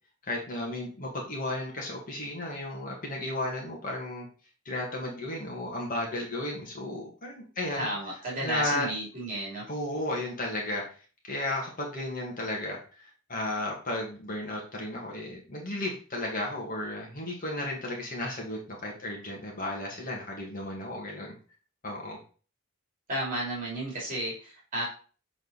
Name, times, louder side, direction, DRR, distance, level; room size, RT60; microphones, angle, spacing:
voice 1, 0.2-4.3 4.7-7.9 8.4-8.9 9.7-10.8 11.2-21.4 21.8-22.2, left 1 dB, 40° left, -2 dB, 1.8 m, -34 dB
voice 2, 7.7-9.6 23.1-24.9, right 1 dB, 40° right, -4 dB, 2.8 m, -33 dB
6.9 x 4.0 x 4.1 m, 0.38 s
head